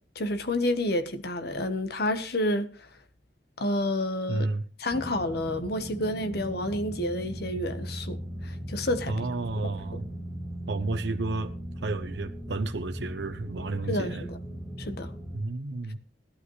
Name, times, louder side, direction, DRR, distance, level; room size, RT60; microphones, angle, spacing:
voice 1, 0.1-2.9 3.6-4.5 4.8-8.2 8.4-9.1 9.6-9.7 13.9-14.4 14.8-15.1, left 1 dB, 65° left, 1.3 m, -29 dB
voice 2, 4.3-4.7 9.1-10.1 10.7-11.5 11.8-14.2 15.3-16.0, right 3 dB, 75° right, 0.8 m, -31 dB
sound 1, 4.9-15.4, right 1 dB, ahead, 6.7 m, -38 dB
17.5 x 12.0 x 3.2 m
head